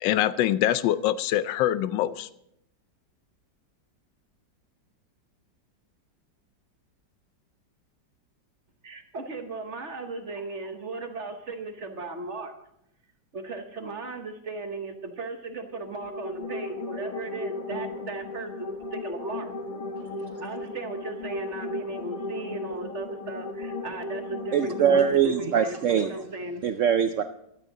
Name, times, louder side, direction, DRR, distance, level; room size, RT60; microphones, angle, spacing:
voice 1, 0.0-2.3, left 12 dB, 85° left, 15 dB, 1.3 m, -24 dB
voice 2, 8.8-12.5 13.3-19.5 20.4-26.7, right 3 dB, 45° right, 6 dB, 1.3 m, -37 dB
sound 1, 15.7-25.1, left 2 dB, 30° left, 0.7 m, -35 dB
voice 3, 24.5-26.1 26.6-27.2, right 8 dB, 75° right, 9 dB, 0.7 m, -22 dB
15.0 x 12.0 x 3.9 m, 0.78 s
omnidirectional pair, 2.0 m